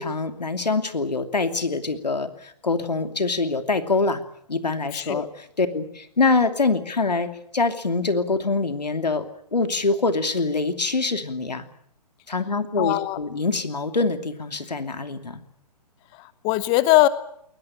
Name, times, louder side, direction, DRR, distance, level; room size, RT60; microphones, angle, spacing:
voice 1, 0.0-4.2 4.5-9.3 9.5-11.7 12.3-15.4, left 3 dB, 85° left, 8 dB, 2.8 m, -24 dB
voice 2, 4.9-5.3 12.8-13.2 16.1-17.1, left 16 dB, 20° left, 16 dB, 0.8 m, -21 dB
21.5 x 20.0 x 9.0 m, 0.70 s
figure-of-eight pair, 135°, 21 cm